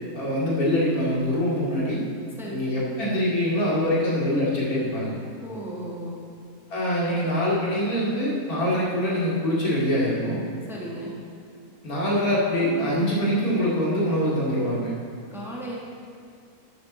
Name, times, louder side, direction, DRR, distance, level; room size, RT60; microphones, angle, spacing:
voice 1, 0.1-2.0 2.5-5.1 6.7-10.4 11.8-14.9, equal, 90° left, -7 dB, 2.8 m, -24 dB
voice 2, 5.4-6.2 10.7-11.2 15.3-15.8, right 1 dB, ahead, -4 dB, 1.4 m, -35 dB
12.5 x 6.6 x 4.2 m, 2.3 s
omnidirectional pair, 1.5 m